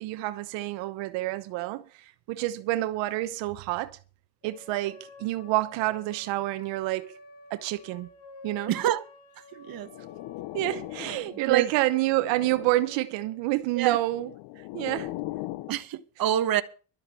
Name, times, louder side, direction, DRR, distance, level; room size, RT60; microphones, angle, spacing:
voice 1, 0.0-4.0 4.4-7.1 7.5-8.1 8.4-8.8 10.5-14.3 14.6-15.1, right 17 dB, 90° right, 1.0 m, -28 dB
sound 1, 4.4-13.4, left 3 dB, 55° left, 2.7 m, -50 dB
voice 2, 8.7-9.0 9.5-9.9 11.5-11.7 13.8-14.1 15.7-16.6, right 11 dB, 55° right, 1.2 m, -26 dB
sound 2, 9.7-11.5 11.9-13.0 13.9-15.8, left 18 dB, 80° left, 0.8 m, -39 dB
12.5 x 7.9 x 7.5 m
cardioid pair, 105°, 43 cm